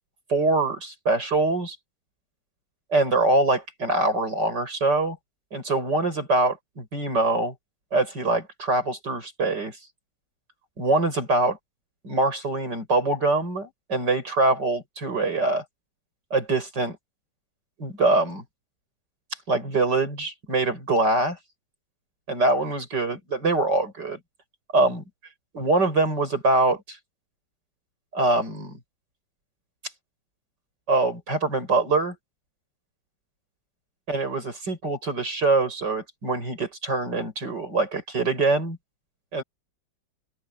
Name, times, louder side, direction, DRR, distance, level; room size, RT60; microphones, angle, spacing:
voice 1, 0.3-1.8 2.9-5.2 5.5-7.5 7.9-9.8 10.8-11.6 12.0-15.6 16.3-17.0 17.8-18.4 19.5-21.4 22.3-24.2 24.7-25.0 25.5-27.0 28.1-28.8 30.9-32.2 34.1-38.8 39.3-39.4, right 2 dB, 70° right, 7.9 m, -24 dB
open air
omnidirectional pair, 1.9 m